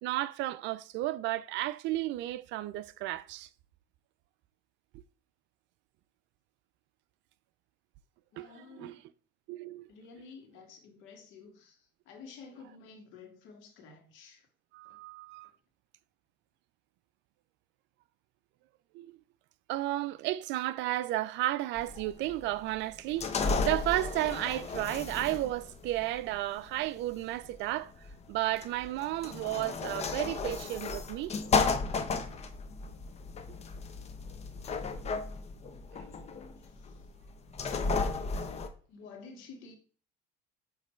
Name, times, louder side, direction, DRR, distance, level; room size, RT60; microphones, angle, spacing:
voice 1, 0.0-3.5 8.4-9.0 9.5-9.8 14.7-15.5 18.9-19.2 19.7-27.9 28.3-31.3 35.0-35.1, right 16 dB, 65° right, 0.5 m, -33 dB
voice 2, 8.3-9.0 9.9-11.8 12.1-14.4 38.9-39.7, left 4 dB, 70° left, 1.9 m, -51 dB
sound 1, 21.8-38.7, left 4 dB, 30° left, 0.8 m, -34 dB
7.3 x 3.2 x 4.4 m
supercardioid pair, 105°, 20 cm